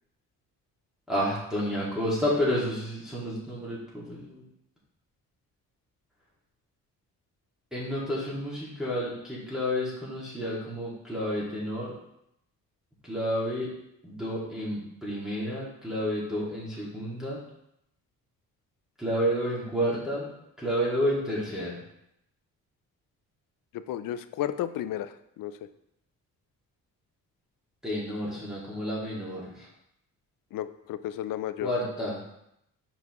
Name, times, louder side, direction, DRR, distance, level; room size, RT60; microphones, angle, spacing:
voice 1, 1.1-4.4 7.7-11.9 13.0-13.7 14.0-17.4 19.0-20.3 20.6-21.8 27.8-29.7 31.6-32.2, equal, ahead, -8 dB, 2.1 m, -30 dB
voice 2, 23.7-25.5 30.5-31.7, left 11 dB, 70° left, 13 dB, 0.5 m, -33 dB
5.8 x 5.6 x 3.1 m, 0.79 s
cardioid pair, 90°, 34 cm